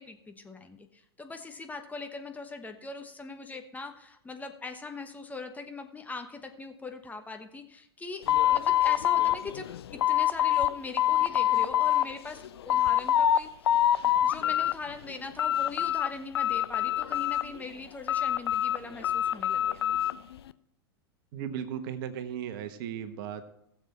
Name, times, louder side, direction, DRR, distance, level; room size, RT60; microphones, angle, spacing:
voice 1, 0.0-8.2 8.5-13.7 14.2-19.8, left 3 dB, 10° left, 6 dB, 1.1 m, -41 dB
sound 1, 8.3-10.7 11.0-12.1 12.4-13.4 13.7-14.7 15.1-16.1 16.3-17.6 18.1-20.2, left 11 dB, 70° left, 0.5 m, -25 dB
voice 2, 21.3-23.5, right 9 dB, 55° right, 10 dB, 1.2 m, -36 dB
17.0 x 7.3 x 4.3 m, 0.79 s
hypercardioid pair, 95°, 14 cm